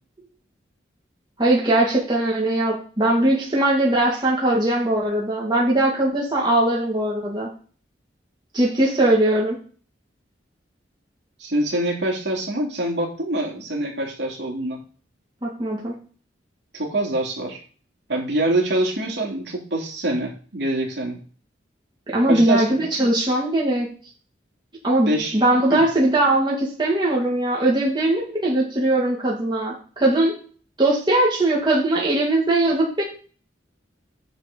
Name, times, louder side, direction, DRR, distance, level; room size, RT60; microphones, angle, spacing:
voice 1, 1.4-7.5 8.5-9.6 15.4-16.0 22.1-23.9 24.8-30.4 30.8-33.0, right 1 dB, 25° right, -4 dB, 2.2 m, -20 dB
voice 2, 11.4-14.8 16.7-17.6 18.1-21.2 22.3-22.7 25.1-25.4 25.7-25.8, right 1 dB, 65° right, -1 dB, 3.1 m, -25 dB
9.3 x 4.0 x 6.8 m, 0.41 s
head